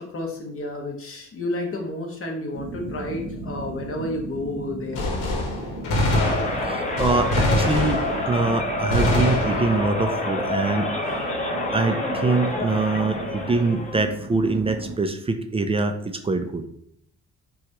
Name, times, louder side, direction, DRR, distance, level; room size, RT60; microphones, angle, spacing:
voice 1, 0.0-5.1, left 1 dB, 45° left, 1 dB, 1.1 m, -31 dB
sound 1, 2.5-15.0, right 3 dB, 75° right, 0.8 m, -37 dB
Gunshot gunfire, 4.9-8.5 8.9-10.0, left 1 dB, 90° left, 1.0 m, -24 dB
sound 2, 6.1-14.1, left 1 dB, 25° left, 1.0 m, -28 dB
voice 2, 6.6-10.9 11.7-16.7, right 3 dB, 20° right, 7 dB, 0.4 m, -24 dB
5.8 x 2.4 x 3.0 m, 0.67 s
cardioid pair, 90°, 30 cm